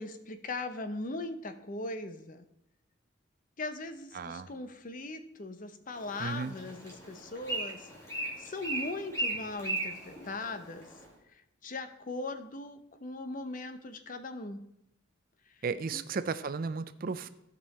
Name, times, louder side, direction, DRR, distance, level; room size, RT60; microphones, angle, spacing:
voice 1, 0.0-2.4 3.6-7.9 8.2-10.9 11.6-14.6 15.9-16.0, left 2 dB, 40° left, 9 dB, 0.7 m, -39 dB
voice 2, 4.1-4.5 6.2-6.6 15.6-17.3, right 5 dB, 45° right, 13 dB, 0.4 m, -34 dB
Bird, 5.9-11.1, right 2 dB, 15° left, 2.2 m, -38 dB
15.0 x 5.4 x 4.2 m, 0.80 s
head